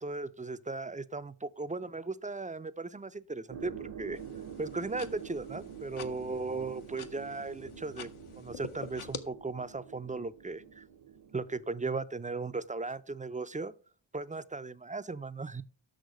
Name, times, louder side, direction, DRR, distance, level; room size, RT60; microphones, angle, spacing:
voice 1, 0.0-4.2 4.6-8.1 8.3-10.8 11.3-13.7 14.1-15.6, right 3 dB, 20° right, 0.3 m, -37 dB
sound 1, 3.5-11.6, right 8 dB, 50° right, 0.7 m, -47 dB
sound 2, 4.1-9.2, left 6 dB, 80° left, 0.8 m, -47 dB
6.5 x 6.0 x 5.1 m
cardioid pair, 40°, 49 cm